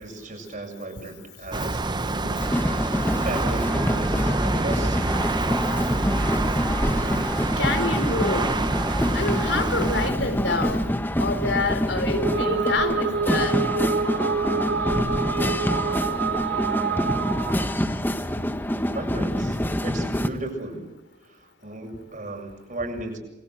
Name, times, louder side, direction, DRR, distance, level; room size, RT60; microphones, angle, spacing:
voice 1, 0.0-2.4 3.2-5.2 18.9-20.9 21.3-23.2, right 2 dB, 45° right, 3 dB, 7.5 m, -35 dB
sound 1, 1.5-10.1, right 2 dB, 25° right, 0.8 m, -27 dB
sound 2, 2.4-20.3, equal, 10° left, 1.5 m, -26 dB
voice 2, 7.6-8.5 9.1-10.9 11.2-13.6, left 3 dB, 85° left, 8 dB, 4.1 m, -27 dB
sound 3, 12.0-17.7, right 5 dB, 80° right, 1.8 m, -27 dB
28.5 x 22.5 x 7.8 m, 1.0 s
head